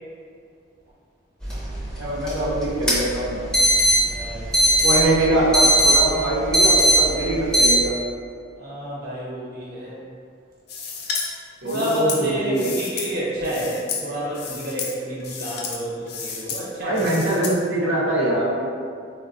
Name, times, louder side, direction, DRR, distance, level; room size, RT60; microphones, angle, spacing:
sound 1, 1.4-7.7, right 1 dB, 5° left, 0.6 m, -20 dB
voice 1, 1.9-3.4 4.8-7.9 11.6-12.7 16.8-18.7, right 1 dB, 90° right, -8 dB, 0.7 m, -23 dB
voice 2, 4.1-4.7 8.5-10.0 11.6-17.5, right 1 dB, 55° right, -7 dB, 0.9 m, -30 dB
sound 2, 10.7-11.3 11.7-13.1 13.4-14.1 14.3-14.9 15.2-15.8 16.1-16.6 17.0-17.5, left 5 dB, 60° left, 0.4 m, -31 dB
3.8 x 2.2 x 2.5 m, 2.3 s
head